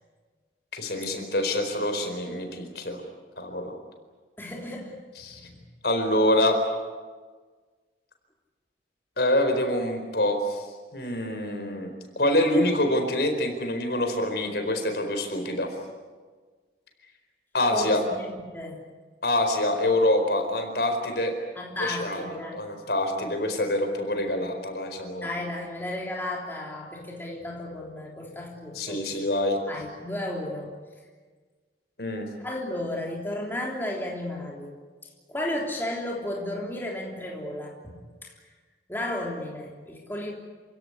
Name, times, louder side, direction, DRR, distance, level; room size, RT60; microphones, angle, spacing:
voice 1, 0.7-3.0 3.4-3.7 5.2-5.4 5.8-6.6 9.2-10.6 10.9-15.7 17.5-18.0 19.2-21.3 21.8-25.3 28.7-29.6 32.0-32.3, left 1 dB, 65° left, 5 dB, 4.5 m, -26 dB
voice 2, 4.4-5.0 5.3-5.6 17.7-18.8 21.5-22.7 25.2-29.2 29.7-30.7 32.4-34.7 35.3-38.0 38.2-38.3 38.9-40.3, left 1 dB, 10° left, -2 dB, 3.4 m, -33 dB
28.0 x 17.0 x 9.9 m, 1.4 s
head